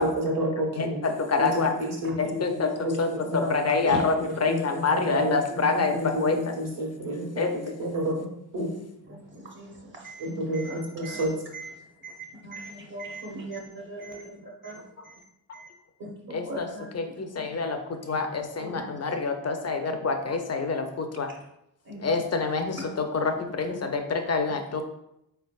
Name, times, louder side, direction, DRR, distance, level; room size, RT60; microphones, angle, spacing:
voice 1, 0.0-1.0 1.4-4.1 4.5-8.2 8.5-8.7 10.2-11.3, equal, 70° right, -1 dB, 1.5 m, -30 dB
voice 2, 0.8-1.7 2.2-2.7 3.0-3.1 3.3-4.1 4.4-6.5 7.4-7.5 15.5-15.6 16.3-16.7 16.9-21.3 22.0-22.8 23.1-24.8, left 4 dB, 30° left, 5 dB, 0.6 m, -27 dB
voice 3, 3.8-4.4 8.6-8.7 9.1-11.3 11.5-15.2 15.5-15.7 16.0-16.9 17.1-17.6 18.6-18.8 21.3-21.4 21.8-22.3 22.8-22.9 23.7-23.8, right 2 dB, 45° right, -1 dB, 1.0 m, -40 dB
3.9 x 3.3 x 2.4 m, 0.81 s
supercardioid pair, 45°, 49 cm